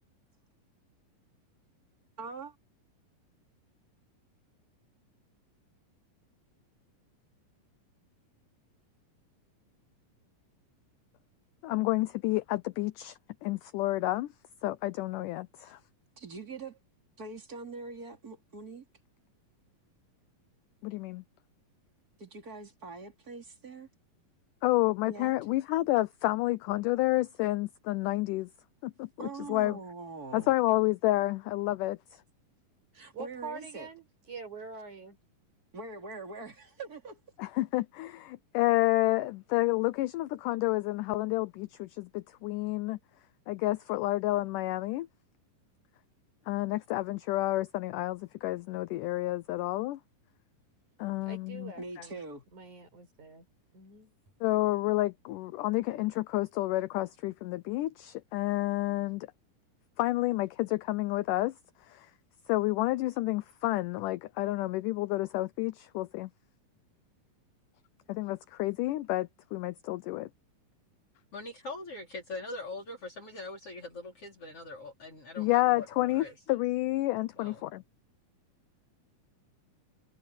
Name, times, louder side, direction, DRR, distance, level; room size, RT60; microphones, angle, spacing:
voice 1, 2.2-2.6 15.6-15.7 16.2-16.8 17.2-18.9 22.2-23.9 25.0-25.3 29.2-30.5 32.9-33.9 35.7-37.2 51.8-52.4, right 3 dB, 25° right, 3.7 m, -43 dB
voice 2, 11.6-14.3 14.6-15.8 20.8-21.2 24.6-28.5 28.8-29.8 30.3-32.2 37.4-43.0 43.5-45.1 46.5-50.0 51.0-51.7 54.4-59.3 60.0-61.5 61.9-62.1 62.5-66.3 68.1-70.3 75.4-77.8, left 18 dB, 80° left, 2.0 m, -30 dB
voice 3, 33.1-35.2 51.3-52.2 52.5-53.5 53.7-54.1, right 4 dB, 55° right, 8.6 m, -45 dB
voice 4, 71.3-76.4 77.3-77.6, left 2 dB, 40° left, 4.4 m, -42 dB
omnidirectional pair, 4.1 m